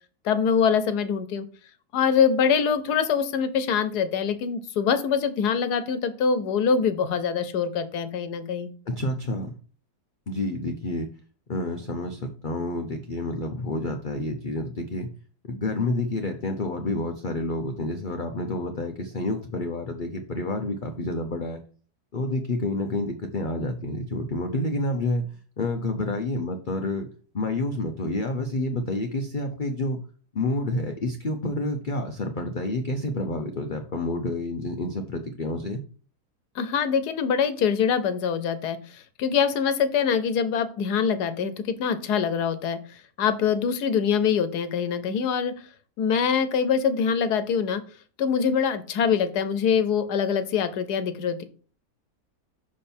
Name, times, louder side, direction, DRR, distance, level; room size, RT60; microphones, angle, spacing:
voice 1, 0.2-1.4 1.9-8.7 36.5-45.5 46.0-47.8 48.2-51.4, left 7 dB, 90° left, 12 dB, 1.4 m, -24 dB
voice 2, 8.9-9.5 10.3-11.1 11.5-15.1 15.4-21.6 22.1-25.2 25.6-27.1 27.3-30.0 30.3-35.8, left 2 dB, 45° left, 4 dB, 0.7 m, -29 dB
6.2 x 5.3 x 4.4 m, 0.40 s
omnidirectional pair, 1.6 m